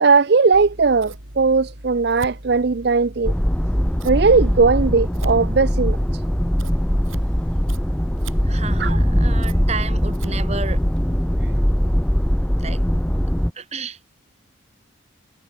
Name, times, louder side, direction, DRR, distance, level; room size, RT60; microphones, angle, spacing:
voice 1, 0.0-3.3 4.0-6.0 8.8-9.0, right 4 dB, 55° right, 0.5 m, -18 dB
Scissors, 0.5-11.2, right 1 dB, 90° right, 7.3 m, -39 dB
sound 1, 3.2-13.5, equal, 5° left, 0.7 m, -21 dB
voice 2, 8.4-10.8 12.5-12.8 13.5-14.0, right 4 dB, 35° right, 2.6 m, -31 dB
head